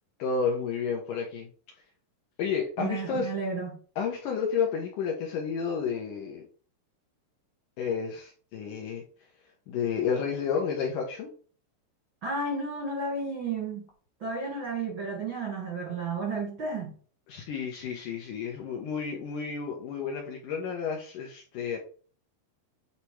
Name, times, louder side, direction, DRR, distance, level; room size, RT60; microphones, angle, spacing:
voice 1, 0.2-1.5 2.4-3.3 4.0-6.4 7.8-9.0 9.7-11.3 17.3-21.8, left 6 dB, 75° left, 2.0 m, -31 dB
voice 2, 2.8-3.8 12.2-13.9 14.2-16.9, right 3 dB, 70° right, 1.1 m, -32 dB
8.4 x 2.9 x 4.5 m
omnidirectional pair, 4.7 m